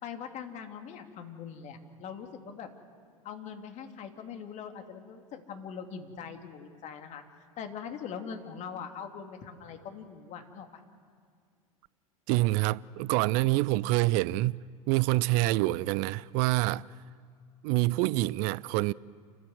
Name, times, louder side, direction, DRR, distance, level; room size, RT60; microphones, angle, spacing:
voice 1, 0.0-2.7 3.2-7.2 7.6-10.8, left 7 dB, 40° left, 2.6 m, -42 dB
voice 2, 12.3-14.6 14.9-16.8 17.6-18.9, right 18 dB, 45° right, 0.5 m, -26 dB
29.0 x 14.0 x 7.9 m
figure-of-eight pair, 80°, 19 cm